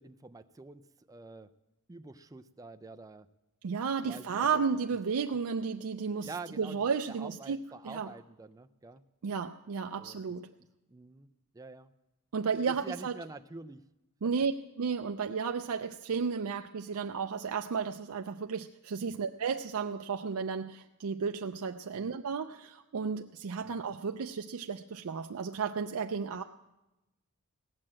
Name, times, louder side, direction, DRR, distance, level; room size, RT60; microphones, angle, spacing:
voice 1, 0.0-1.5 1.9-3.3 4.0-4.6 6.2-9.0 10.0-10.2 10.9-11.3 11.5-11.9 12.7-13.8 19.1-19.2 21.9-22.1 23.6-23.8, right 3 dB, 15° right, 8 dB, 0.4 m, -47 dB
voice 2, 3.6-6.3 6.6-7.6 7.8-8.1 9.2-10.5 12.3-13.2 14.2-14.5 14.8-26.4, right 5 dB, 70° right, 6 dB, 0.4 m, -33 dB
17.0 x 8.7 x 7.5 m, 1.0 s
head